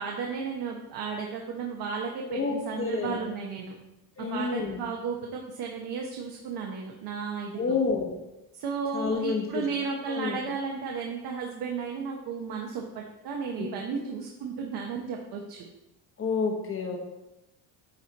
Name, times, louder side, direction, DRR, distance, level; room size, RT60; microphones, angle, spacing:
voice 1, 0.0-3.7 4.2-7.8 8.5-15.7, right 5 dB, 60° right, 0 dB, 1.1 m, -34 dB
voice 2, 2.3-3.2 4.2-4.8 7.5-8.1 8.9-9.7 10.1-10.4 13.6-14.0 16.2-17.0, left 4 dB, 30° left, 2 dB, 1.3 m, -29 dB
9.8 x 4.4 x 4.1 m, 0.94 s
cardioid pair, 165°, 42 cm